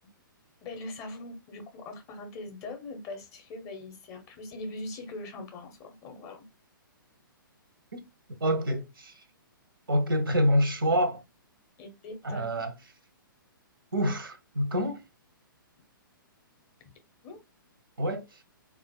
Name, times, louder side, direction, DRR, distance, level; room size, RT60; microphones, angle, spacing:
voice 1, 0.6-6.5 11.8-12.7 17.2-17.4, left 2 dB, 25° left, 0.7 m, -41 dB
voice 2, 8.4-9.1 9.9-11.2 12.2-12.7 13.9-15.0 18.0-18.2, equal, 75° right, 0.8 m, -26 dB
3.8 x 2.4 x 2.2 m
figure-of-eight pair, 120°, 12 cm